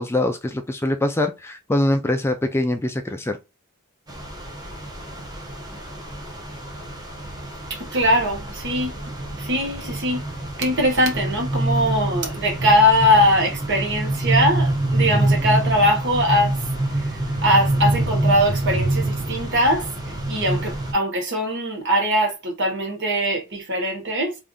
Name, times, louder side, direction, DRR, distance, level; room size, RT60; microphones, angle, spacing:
voice 1, 0.0-3.4, left 1 dB, 10° left, 0.4 m, -23 dB
sound 1, 4.1-20.9, right 1 dB, 20° right, 0.9 m, -26 dB
voice 2, 7.7-8.9 9.4-10.2 10.6-16.7 17.0-17.1 17.4-24.4, equal, 55° right, 1.3 m, -21 dB
3.4 x 2.5 x 3.7 m
head